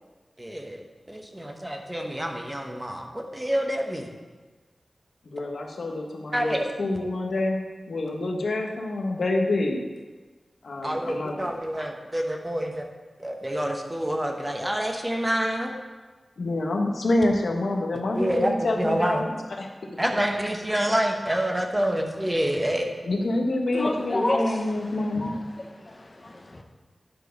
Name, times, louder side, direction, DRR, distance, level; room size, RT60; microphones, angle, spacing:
voice 1, 0.4-0.8 1.1-4.1 6.3-6.7 10.8-12.8 13.2-15.7 18.1-19.2 20.0-22.9, equal, 15° right, 2 dB, 1.0 m, -27 dB
voice 2, 5.2-9.8 10.6-11.3 16.4-19.7 23.0-25.3, left 2 dB, 85° left, 1 dB, 1.1 m, -27 dB
voice 3, 23.7-24.8 25.2-25.3 25.8-26.6, left 1 dB, 35° left, 3 dB, 1.0 m, -29 dB
9.9 x 4.6 x 5.2 m, 1.3 s
wide cardioid pair, 100°, 0 cm